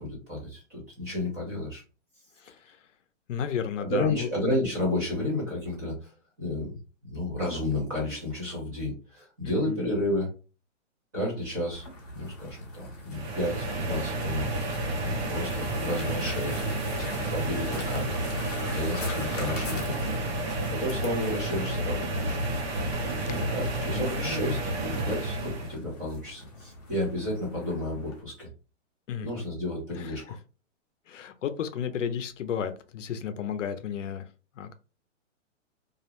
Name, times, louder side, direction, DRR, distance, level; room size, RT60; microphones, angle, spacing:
voice 1, 0.0-1.8 2.5-2.6 3.7-6.1 6.4-10.3 11.1-11.8 12.1-14.5 14.8-18.4 18.7-20.1 20.6-22.4 23.2-28.5 29.2-30.4, left 1 dB, 15° right, 0.6 m, -32 dB
voice 2, 2.4-2.8 3.3-4.3 9.4-9.8 23.2-23.5 23.9-24.5 29.1-29.3 30.0-30.3 31.1-34.3 34.6-34.7, left 8 dB, 75° left, 0.5 m, -33 dB
sound 1, 11.7-28.2, left 2 dB, 30° left, 0.7 m, -44 dB
sound 2, 13.1-25.8, right 1 dB, 55° right, 0.9 m, -31 dB
2.4 x 2.0 x 2.8 m
hypercardioid pair, 170°, 38 cm